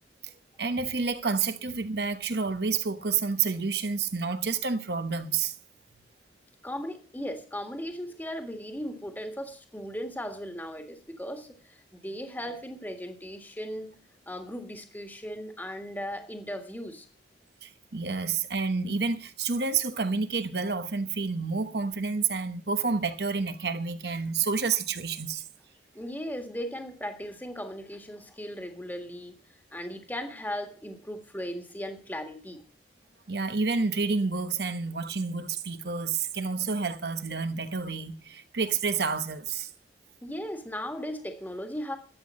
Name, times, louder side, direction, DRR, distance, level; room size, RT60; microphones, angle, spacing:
voice 1, 0.6-5.5 17.6-25.4 33.3-39.7, right 5 dB, 65° right, 1.1 m, -29 dB
voice 2, 6.6-14.0 14.3-17.1 25.9-29.3 29.7-32.6 40.2-42.0, equal, 10° left, 1.7 m, -37 dB
12.5 x 8.4 x 7.5 m
head